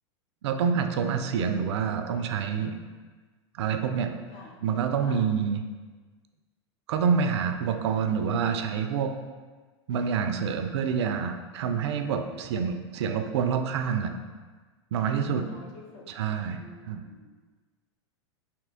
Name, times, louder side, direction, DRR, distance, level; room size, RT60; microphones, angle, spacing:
voice 1, 0.4-2.8 3.6-4.1 4.6-5.6 6.9-9.1 9.9-14.1 14.9-15.5 16.1-17.0, right 6 dB, 70° right, 6 dB, 0.4 m, -27 dB
voice 2, 15.4-16.0 16.5-17.3, left 2 dB, 50° left, -1 dB, 0.9 m, -49 dB
3.4 x 2.8 x 3.6 m, 1.4 s
hypercardioid pair, 105°, 15 cm